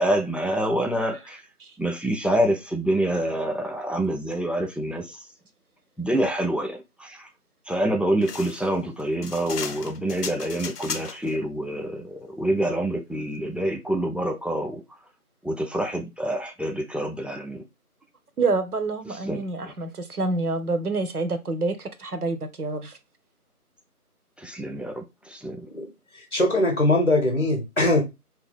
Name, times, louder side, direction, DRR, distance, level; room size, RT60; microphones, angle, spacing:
voice 1, 0.0-1.4 1.8-5.3 6.0-7.3 7.7-14.8 15.4-17.6 19.1-19.7 24.4-25.7, right 1 dB, 5° right, 0.3 m, -27 dB
sound 1, 8.2-11.3, left 5 dB, 85° left, 0.6 m, -36 dB
voice 2, 18.4-23.0, right 3 dB, 75° right, 0.7 m, -27 dB
voice 3, 25.7-28.0, left 1 dB, 50° left, 0.7 m, -22 dB
2.7 x 2.1 x 3.6 m
figure-of-eight pair, 170°, 46 cm